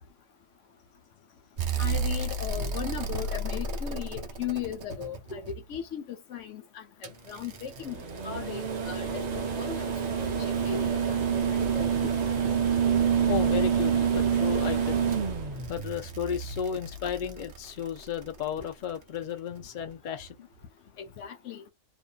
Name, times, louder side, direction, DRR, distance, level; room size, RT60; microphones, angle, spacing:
sound 1, 1.6-5.8 7.0-18.2 19.8-19.9, right 6 dB, 55° right, 0.4 m, -28 dB
voice 1, 1.8-6.0 6.3-8.0 8.2-9.8 10.2-10.3 10.7-11.1 11.7-12.1 21.2-21.6, left 8 dB, 70° left, 0.9 m, -37 dB
voice 2, 13.3-15.1 15.7-20.5, left 8 dB, 50° left, 0.7 m, -34 dB
2.5 x 2.5 x 2.2 m
omnidirectional pair, 1.4 m